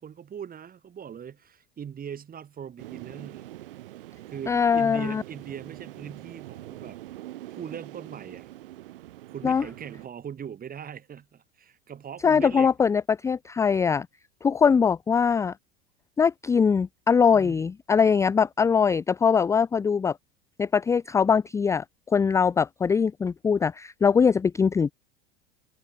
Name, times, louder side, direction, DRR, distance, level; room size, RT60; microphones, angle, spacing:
voice 1, 0.0-3.5 4.3-7.0 7.5-8.5 9.3-12.7 17.3-17.7, right 8 dB, 30° right, 6.8 m, -40 dB
sound 1, 2.8-10.1, right 15 dB, 65° right, 2.9 m, -44 dB
voice 2, 4.5-5.2 9.4-9.6 12.2-14.1 14.4-15.5 16.2-20.2 20.6-24.9, left 6 dB, 10° left, 0.4 m, -22 dB
figure-of-eight pair, 80°, 29 cm